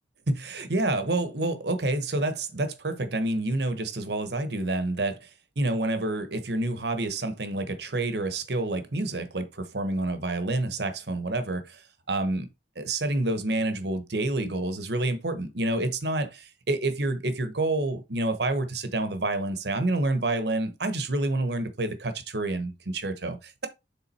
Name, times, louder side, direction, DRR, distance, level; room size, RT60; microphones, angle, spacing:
voice 1, 0.3-5.3 5.6-11.8 12.1-12.5 12.8-23.7, right 2 dB, 65° right, 1.1 m, -28 dB
7.1 x 3.9 x 4.2 m
head